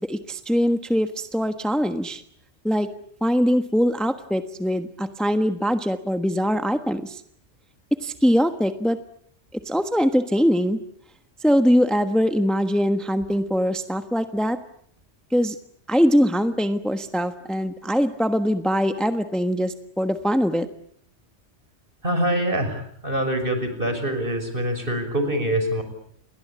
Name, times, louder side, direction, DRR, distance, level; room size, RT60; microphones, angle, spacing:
voice 1, 0.1-2.2 2.6-2.9 3.2-7.2 8.0-9.0 9.6-10.8 11.4-14.6 15.3-15.6 15.9-20.7, equal, ahead, 8 dB, 1.2 m, -22 dB
voice 2, 22.0-25.8, right 1 dB, 50° right, 8 dB, 6.1 m, -25 dB
29.5 x 22.0 x 8.6 m, 0.66 s
omnidirectional pair, 1.1 m